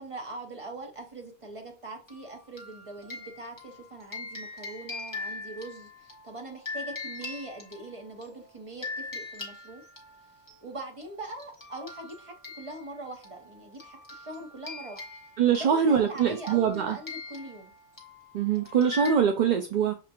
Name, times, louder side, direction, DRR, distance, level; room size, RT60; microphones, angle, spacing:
voice 1, 0.0-9.9 10.6-15.1 15.5-17.7, right 2 dB, 30° right, 1.2 m, -42 dB
sound 1, 2.1-8.3 8.8-10.6 11.0-11.1 11.4-19.2, left 3 dB, 20° left, 1.3 m, -42 dB
voice 2, 15.4-17.0 18.3-19.9, right 7 dB, 55° right, 0.5 m, -23 dB
6.6 x 2.5 x 2.8 m
omnidirectional pair, 1.1 m